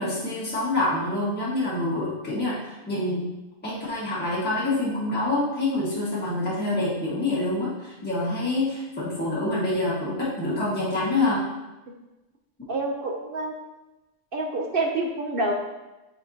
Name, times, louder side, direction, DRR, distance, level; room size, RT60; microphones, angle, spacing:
voice 1, 0.0-3.2 3.6-11.4, left 2 dB, 10° left, -9 dB, 1.5 m, -26 dB
voice 2, 12.7-13.5 14.3-15.5, right 2 dB, 60° right, 1 dB, 0.8 m, -27 dB
10.0 x 4.3 x 2.8 m, 1.1 s
omnidirectional pair, 1.1 m